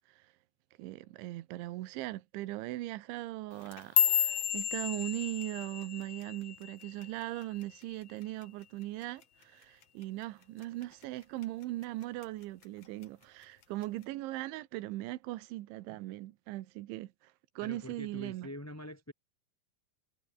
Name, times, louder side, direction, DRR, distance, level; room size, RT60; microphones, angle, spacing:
voice 1, 0.8-18.5, right 17 dB, 75° right, 3.4 m, -39 dB
sound 1, 3.5-7.9 8.2-8.6 9.0-9.4 9.8-10.0 10.6-11.0 11.4-12.2 12.6-13.0 13.8-13.9, left 10 dB, 65° left, 1.6 m, -32 dB
voice 2, 17.6-19.1, left 1 dB, 5° left, 3.9 m, -45 dB
omnidirectional pair, 5.7 m